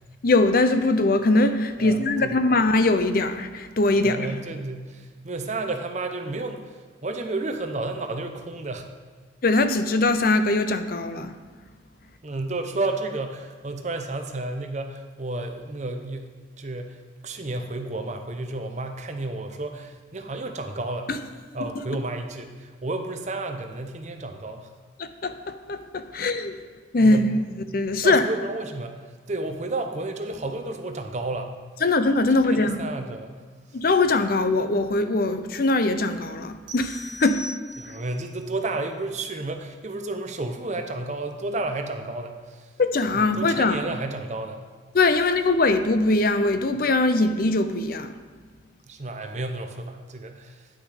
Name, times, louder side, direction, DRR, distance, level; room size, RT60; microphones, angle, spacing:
voice 1, 0.2-4.3 9.4-11.3 21.1-21.2 25.0-26.5 26.9-28.3 31.8-32.8 33.7-37.4 42.8-43.8 44.9-48.1, left 2 dB, 50° left, 9 dB, 0.5 m, -21 dB
voice 2, 1.8-2.4 4.0-8.9 12.2-16.3 16.6-21.2 21.5-24.7 27.0-27.4 27.9-31.6 32.5-33.4 33.7-33.8 37.8-42.7 43.1-44.6 48.9-50.8, right 2 dB, 40° right, 5 dB, 0.7 m, -32 dB
sound 1, 36.7-38.2, left 1 dB, 80° right, 1.3 m, -40 dB
9.6 x 6.1 x 5.0 m, 1.5 s
head